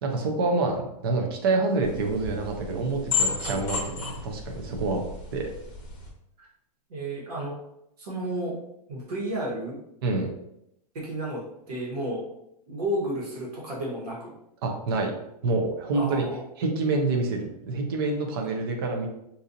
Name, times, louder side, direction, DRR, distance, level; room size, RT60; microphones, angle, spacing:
voice 1, 0.0-5.0 5.3-5.5 10.0-10.3 14.6-15.1 15.4-16.2 16.6-19.1, right 3 dB, 35° right, 2 dB, 0.5 m, -27 dB
sound 1, 1.8-6.1, left 5 dB, 20° left, 0.9 m, -32 dB
voice 2, 6.9-7.5 8.0-8.5 8.9-9.8 10.9-12.2 12.7-14.3 15.9-16.4, right 1 dB, 70° right, -4 dB, 1.3 m, -32 dB
4.0 x 2.6 x 2.7 m, 0.79 s
supercardioid pair, 180°, 21 cm